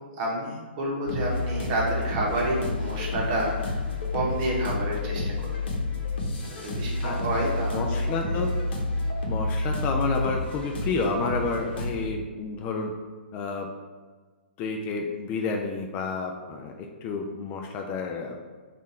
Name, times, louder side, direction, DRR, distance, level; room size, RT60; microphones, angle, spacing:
voice 1, 0.2-3.8 4.1-5.5 6.6-8.0 8.3-8.4, right 1 dB, 35° right, -3 dB, 1.1 m, -29 dB
sound 1, 1.1-12.0, left 2 dB, 65° left, 0.9 m, -30 dB
voice 2, 7.0-7.4 7.7-8.5 9.3-12.9 13.3-13.7 14.6-18.4, left 4 dB, 25° left, 2 dB, 0.3 m, -30 dB
3.6 x 2.5 x 4.2 m, 1.4 s
hypercardioid pair, 140°, 6 cm